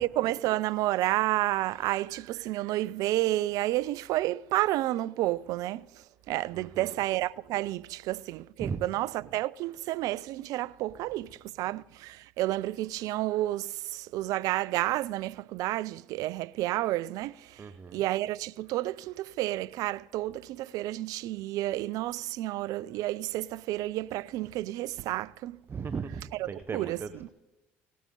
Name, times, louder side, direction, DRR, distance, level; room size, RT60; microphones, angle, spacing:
voice 1, 0.0-17.6 17.9-25.6 26.3-27.3, right 16 dB, 65° right, 0.4 m, -31 dB
voice 2, 6.5-6.9 8.6-8.8 17.6-18.0 25.7-27.3, right 5 dB, 35° right, 0.8 m, -37 dB
18.0 x 9.2 x 3.8 m
hypercardioid pair, 65°, 7 cm